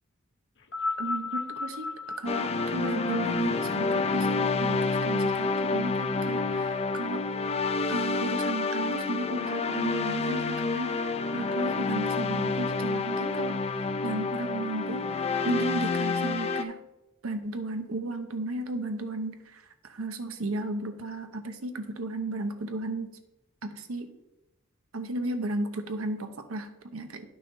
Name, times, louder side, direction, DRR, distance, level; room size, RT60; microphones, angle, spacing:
sound 1, 0.6-5.1 6.0-6.1, left 3 dB, 60° left, 0.9 m, -36 dB
voice 1, 1.0-1.9 2.2-7.2 7.9-16.8 17.2-19.6 19.9-23.1 23.6-24.1 24.9-27.3, right 2 dB, 80° right, 8 dB, 0.9 m, -34 dB
sound 2, 2.3-16.6, left 3 dB, 30° left, 0.4 m, -28 dB
10.0 x 5.8 x 3.9 m, 0.93 s
head